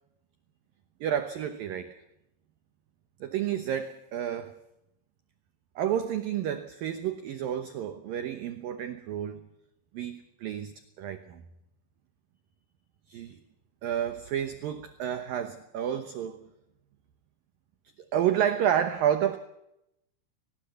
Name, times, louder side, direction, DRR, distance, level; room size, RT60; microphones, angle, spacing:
voice 1, 1.0-2.0 3.2-4.6 5.8-9.5 9.9-11.4 13.1-13.4 13.8-16.5 18.1-19.4, right 9 dB, 85° right, 2.0 m, -30 dB
21.5 x 20.0 x 7.0 m
omnidirectional pair, 5.8 m